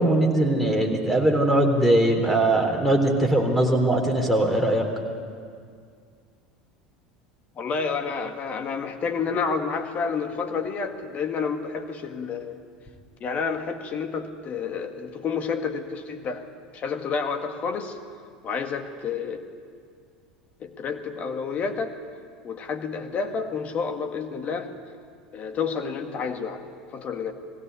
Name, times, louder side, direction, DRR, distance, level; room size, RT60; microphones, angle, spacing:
voice 1, 0.0-4.9, right 1 dB, 5° left, 2 dB, 3.7 m, -21 dB
voice 2, 7.6-12.6 13.2-16.5 16.7-18.0 18.4-19.4 20.6-22.0 22.4-24.8 25.3-26.7 26.9-27.3, left 5 dB, 40° left, 6 dB, 1.9 m, -29 dB
20.0 x 16.5 x 8.4 m, 2.1 s
hypercardioid pair, 80°, 4 cm